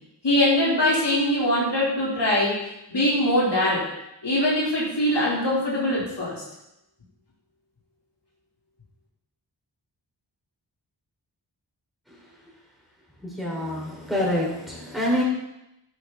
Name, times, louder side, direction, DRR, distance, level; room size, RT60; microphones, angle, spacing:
voice 1, 0.2-2.5 2.9-3.8 4.2-6.4, left 1 dB, 70° left, -6 dB, 4.3 m, -22 dB
voice 2, 13.4-15.2, left 1 dB, ahead, -4 dB, 5.0 m, -26 dB
13.0 x 11.0 x 4.2 m, 0.87 s
wide cardioid pair, 70°, 42 cm